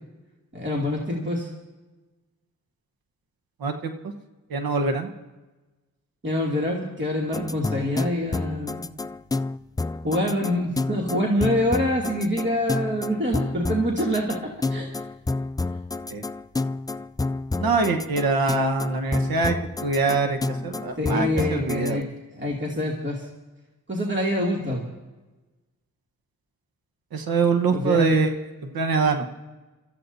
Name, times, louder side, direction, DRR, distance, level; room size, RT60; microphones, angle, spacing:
voice 1, 0.5-1.5 6.2-8.9 10.0-14.9 20.6-20.7 21.0-22.1 22.4-23.3 23.9-24.9 27.7-28.2, left 1 dB, 30° right, -2 dB, 2.6 m, -26 dB
voice 2, 3.6-3.9 4.5-5.1 16.1-16.2 17.6-22.0 27.1-28.3 28.6-29.2, right 4 dB, 85° right, 6 dB, 1.3 m, -24 dB
sound 1, 7.3-21.9, left 3 dB, 10° left, 0.3 m, -29 dB
24.5 x 14.0 x 2.7 m, 1.2 s
cardioid pair, 55°, 35 cm